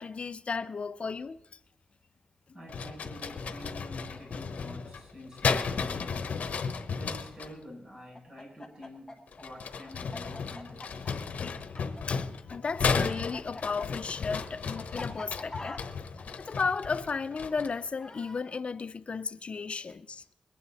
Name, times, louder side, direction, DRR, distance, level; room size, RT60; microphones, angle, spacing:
voice 1, 0.0-1.6 11.4-11.6 12.1-15.8 16.4-20.2, left 5 dB, 55° left, 0.5 m, -34 dB
voice 2, 2.5-6.5 6.9-11.1, equal, 45° right, 7.3 m, -48 dB
sound 1, 2.7-7.5 9.3-17.9, left 5 dB, 80° left, 1.0 m, -34 dB
Chicken rooster, 8.1-12.6 12.8-18.4, left 2 dB, 25° left, 2.0 m, -44 dB
22.5 x 9.1 x 4.1 m
wide cardioid pair, 80°, 2 cm